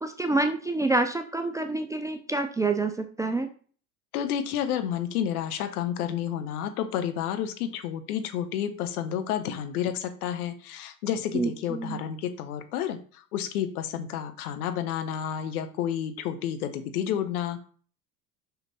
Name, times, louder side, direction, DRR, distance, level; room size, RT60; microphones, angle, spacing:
voice 1, 0.0-3.5 11.3-12.0, right 2 dB, 5° right, 6 dB, 0.5 m, -27 dB
voice 2, 4.1-17.7, left 9 dB, 65° left, 9 dB, 1.1 m, -30 dB
5.9 x 5.7 x 4.2 m, 0.42 s
figure-of-eight pair, 75°, 49 cm